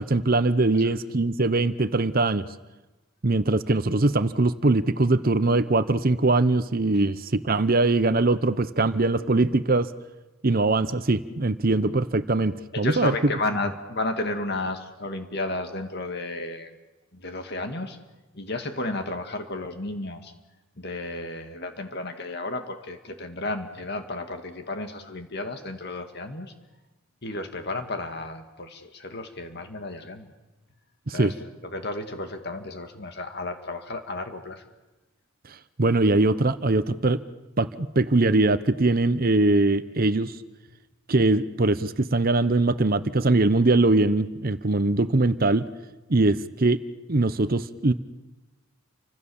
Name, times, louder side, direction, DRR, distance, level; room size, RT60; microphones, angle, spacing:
voice 1, 0.0-2.5 3.2-9.9 10.4-13.1 31.1-31.3 35.5-37.2 37.6-40.4 41.1-45.7 46.1-46.8 47.1-47.9, right 2 dB, 40° right, 13 dB, 0.8 m, -22 dB
voice 2, 12.7-16.8 17.1-18.0 18.3-20.3 20.8-26.5 27.2-30.3 31.1-31.3 31.6-34.6, left 2 dB, 50° left, 6 dB, 2.1 m, -32 dB
30.0 x 25.5 x 7.2 m, 1.1 s
head